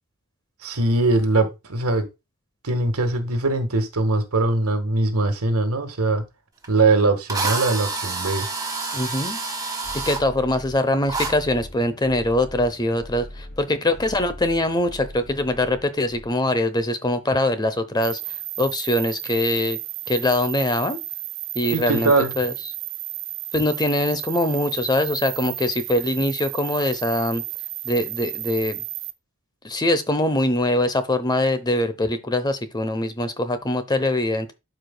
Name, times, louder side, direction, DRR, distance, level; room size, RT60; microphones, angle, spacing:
voice 1, 0.6-2.1 2.6-6.2 6.7-8.5 21.7-22.3, right 2 dB, 85° right, 1.6 m, -21 dB
Drill, 6.6-6.7 7.3-10.2 11.1-11.3, right 3 dB, 15° right, 1.6 m, -28 dB
voice 2, 8.9-9.4 9.9-19.8 20.1-21.0 21.5-22.5 23.5-27.4 27.8-28.8 29.6-34.5, left 1 dB, 20° left, 0.8 m, -23 dB
sound 1, 9.8-16.3, left 1 dB, 50° left, 4.6 m, -41 dB
sound 2, 18.0-29.1, right 18 dB, 60° right, 0.6 m, -33 dB
12.0 x 5.0 x 2.3 m
head